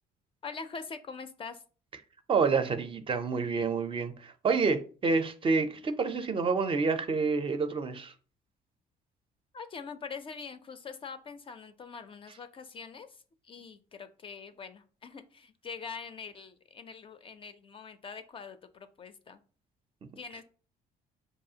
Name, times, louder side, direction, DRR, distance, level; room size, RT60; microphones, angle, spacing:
voice 1, 0.4-1.6 9.5-13.1 13.5-19.4 20.2-20.4, left 5 dB, 30° left, 0.4 m, -43 dB
voice 2, 2.3-8.1, right 4 dB, 30° right, 0.4 m, -28 dB
4.8 x 2.4 x 2.7 m
cardioid pair, 110°, 17 cm